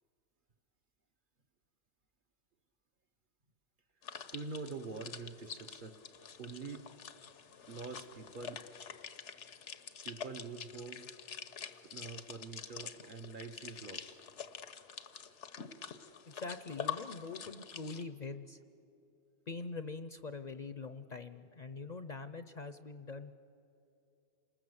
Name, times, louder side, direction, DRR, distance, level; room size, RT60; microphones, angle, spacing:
sound 1, 4.0-18.0, left 7 dB, 90° left, 1.3 m, -46 dB
voice 1, 4.3-6.0 6.4-6.9 7.7-8.6 10.0-11.1 11.8-14.2, right 4 dB, 50° right, 6 dB, 1.2 m, -45 dB
voice 2, 16.3-18.6 19.5-23.4, left 3 dB, 45° left, 11 dB, 0.7 m, -44 dB
28.0 x 20.0 x 8.0 m, 2.8 s
omnidirectional pair, 1.2 m